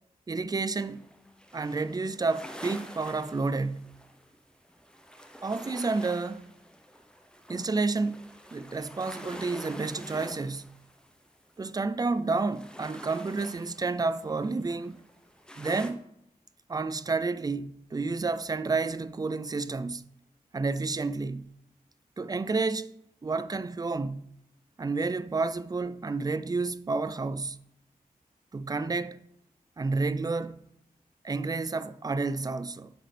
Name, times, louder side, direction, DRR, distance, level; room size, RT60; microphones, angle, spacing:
voice 1, 0.3-1.1 1.5-4.0 5.4-6.5 7.5-10.8 11.6-15.0 15.6-16.0 16.7-20.0 20.5-21.5 22.2-22.9 23.2-24.3 24.8-27.6 28.5-29.3 29.8-30.7 31.2-32.9, right 3 dB, 25° right, 0.4 m, -30 dB
sound 1, 0.8-12.0 12.3-15.9, equal, 5° left, 1.0 m, -47 dB
8.5 x 3.7 x 3.4 m
cardioid pair, 40°, 16 cm